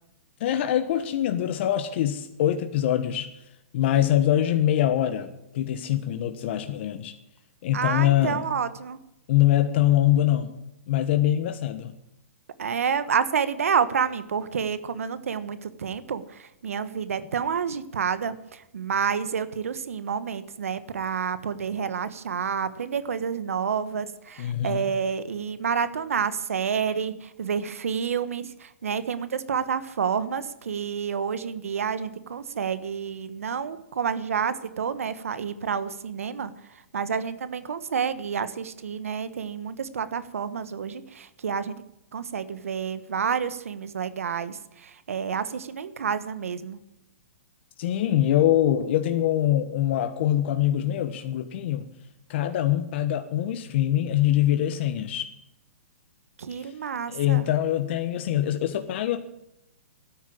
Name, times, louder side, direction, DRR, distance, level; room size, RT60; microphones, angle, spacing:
voice 1, 0.4-3.3 3.7-5.3 5.5-7.1 7.6-8.4 9.3-10.5 10.9-11.9 24.4-24.9 47.8-51.9 52.3-55.3 56.6-56.7 57.1-59.2, left 12 dB, 50° left, 8 dB, 1.3 m, -23 dB
voice 2, 7.7-9.0 12.6-36.5 36.9-41.7 42.1-46.8 56.4-57.4, right 7 dB, 80° right, 14 dB, 1.3 m, -29 dB
13.0 x 10.0 x 8.6 m, 0.84 s
hypercardioid pair, 135°, 8 cm